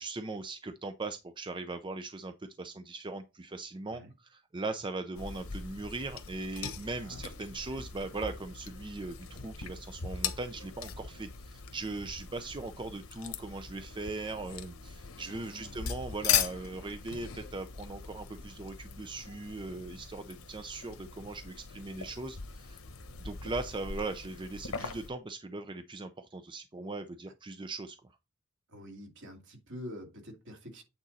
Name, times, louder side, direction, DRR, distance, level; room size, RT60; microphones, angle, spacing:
voice 1, 0.0-22.8 23.2-28.0, right 3 dB, 20° right, 0.5 m, -39 dB
sound 1, 5.2-25.1, left 8 dB, 65° left, 1.1 m, -39 dB
voice 2, 6.9-7.2 15.3-15.8 28.7-30.8, equal, 60° right, 2.4 m, -47 dB
8.8 x 4.0 x 4.1 m
head